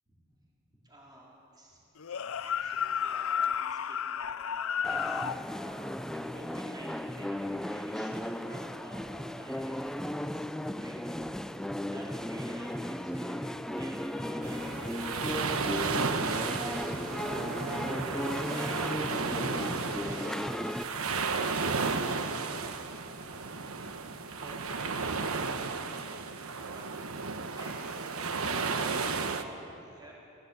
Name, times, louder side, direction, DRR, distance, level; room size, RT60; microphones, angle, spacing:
voice 1, 0.7-1.8 2.2-10.4 10.7-13.5 13.7-17.0 17.6-24.1 24.4-26.2 26.6-28.3 28.9-30.1, right 1 dB, 20° right, -4 dB, 4.4 m, -52 dB
sound 1, 2.0-5.4, left 7 dB, 75° left, 0.6 m, -32 dB
sound 2, 4.8-20.8, left 1 dB, 5° left, 0.5 m, -35 dB
sound 3, 14.4-29.4, right 4 dB, 85° right, 1.2 m, -33 dB
23.0 x 17.5 x 8.2 m, 2.7 s
head